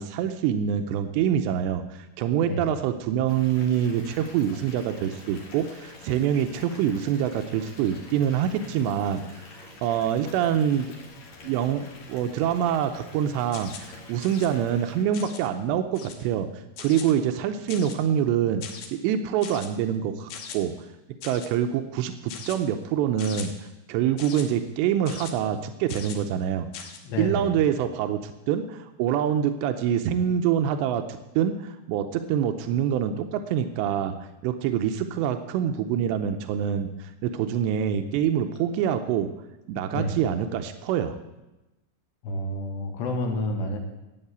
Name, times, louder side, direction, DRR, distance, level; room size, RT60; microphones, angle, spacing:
voice 1, 0.0-10.9 11.4-20.7 21.2-23.5 23.9-26.9 27.2-34.2 34.4-39.3 39.7-41.2, right 9 dB, 90° right, 8 dB, 2.4 m, -26 dB
Water tap faucet / Bathtub (filling or washing) / Fill (with liquid), 3.3-15.0, left 2 dB, 45° left, 2.7 m, -47 dB
sound 1, 13.5-13.9 14.2-14.5 15.1-15.5 15.9-16.3 16.8-17.1 17.7-18.1 18.6-18.9 19.4-19.7 20.3-20.6 21.2-21.5 22.3-22.6 23.2-23.5 24.2-24.5 25.1-25.3 25.9-26.2 26.7-27.0, left 7 dB, 85° left, 1.8 m, -40 dB
voice 2, 27.0-27.5 39.9-40.2 42.2-43.8, left 1 dB, 65° left, 3 dB, 3.4 m, -29 dB
13.0 x 8.8 x 8.0 m, 1.0 s
omnidirectional pair, 5.8 m